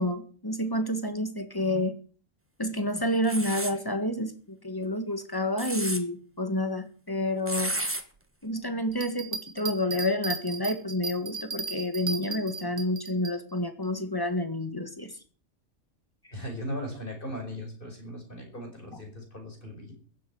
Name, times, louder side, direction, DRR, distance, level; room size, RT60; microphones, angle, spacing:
voice 1, 0.0-1.9 2.6-7.7 8.4-15.1, left 1 dB, 15° left, 8 dB, 1.7 m, -29 dB
sound 1, 3.2-3.8 5.4-6.0 7.5-8.0, right 1 dB, 10° right, 1.4 m, -31 dB
Bell, 8.9-13.3 13.8-13.9, right 4 dB, 50° right, 2.1 m, -35 dB
voice 2, 16.3-20.0, equal, 40° left, 3 dB, 5.5 m, -38 dB
15.0 x 8.0 x 9.5 m, 0.43 s
omnidirectional pair, 1.3 m